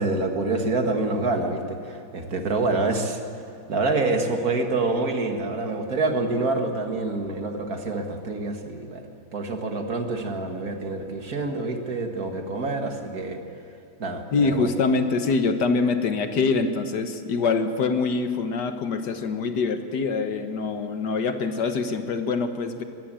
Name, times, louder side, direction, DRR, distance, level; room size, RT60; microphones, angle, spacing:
voice 1, 0.0-3.2 3.7-9.0 9.3-13.4 14.0-14.7, right 3 dB, 55° right, 4 dB, 2.1 m, -26 dB
voice 2, 14.3-22.8, left 4 dB, 70° left, 8 dB, 1.8 m, -24 dB
21.5 x 14.5 x 8.9 m, 2.6 s
omnidirectional pair, 1.9 m